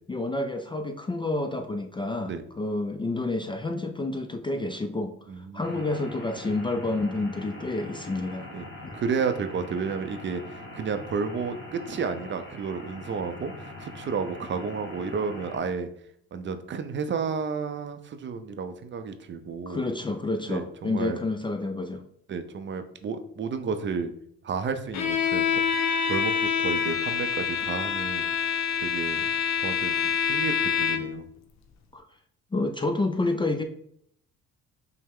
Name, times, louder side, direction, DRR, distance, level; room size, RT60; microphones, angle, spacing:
voice 1, 0.1-5.1 5.5-8.5 8.8-9.0 19.7-22.0 31.9-32.0 32.5-33.6, left 2 dB, 15° left, 6 dB, 0.4 m, -29 dB
voice 2, 5.3-5.9 8.5-8.7 8.9-10.4 10.7-13.5 13.8-15.9 16.3-19.8 20.5-21.2 22.3-24.1 24.4-25.6 26.0-28.2 28.8-29.3 29.6-31.3, right 5 dB, 40° right, 9 dB, 0.5 m, -32 dB
sound 1, 5.6-15.6, left 1 dB, 35° left, 1.7 m, -42 dB
Bowed string instrument, 24.9-31.3, left 7 dB, 60° left, 0.7 m, -26 dB
5.4 x 2.1 x 3.5 m, 0.69 s
supercardioid pair, 75°, 31 cm